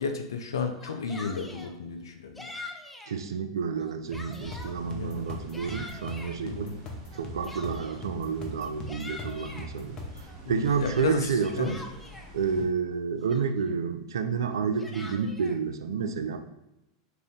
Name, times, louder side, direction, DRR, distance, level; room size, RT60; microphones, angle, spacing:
voice 1, 0.0-2.5 4.9-5.2 6.4-6.8 10.4-11.7, left 5 dB, 75° left, 6 dB, 0.5 m, -33 dB
Yell, 0.7-1.7 2.4-3.2 3.7-4.8 5.2-6.4 7.1-8.1 8.6-9.7 10.2-12.3 12.9-13.0 13.3-13.8 14.5-15.6, left 2 dB, 5° left, 0.4 m, -44 dB
voice 2, 3.1-6.7 7.1-10.0 10.5-11.8 12.3-16.4, right 6 dB, 75° right, 8 dB, 0.3 m, -30 dB
sound 1, 4.1-10.3, left 2 dB, 30° left, 0.8 m, -41 dB
sound 2, 4.4-12.6, right 2 dB, 40° right, 0.8 m, -46 dB
3.4 x 2.6 x 3.5 m, 0.93 s
hypercardioid pair, 95°, 2 cm